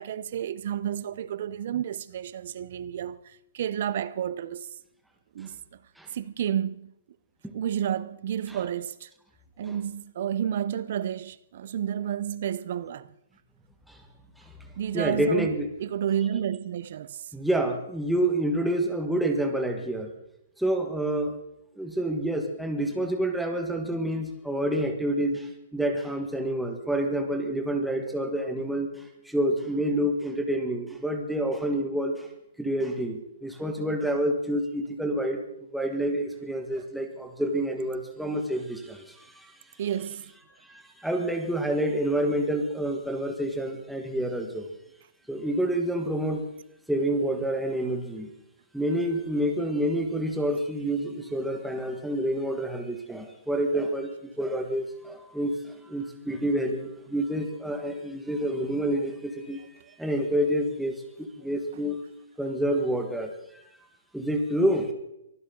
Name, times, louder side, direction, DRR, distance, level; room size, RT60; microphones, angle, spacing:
voice 1, 0.0-3.2 3.5-4.7 5.3-5.5 6.1-6.9 7.5-9.1 9.6-13.1 14.8-15.5 15.8-17.2 39.8-40.2, right 9 dB, 50° right, 0.7 m, -30 dB
voice 2, 14.9-15.9 17.3-20.1 20.6-21.4 21.8-32.3 32.6-35.4 35.7-39.6 40.6-44.7 45.3-46.5 46.9-48.3 48.7-54.1 54.4-59.6 60.0-62.0 62.4-63.6 64.1-64.9, right 1 dB, ahead, 1.6 m, -28 dB
23.5 x 15.0 x 3.9 m
hypercardioid pair, 160°, 0 cm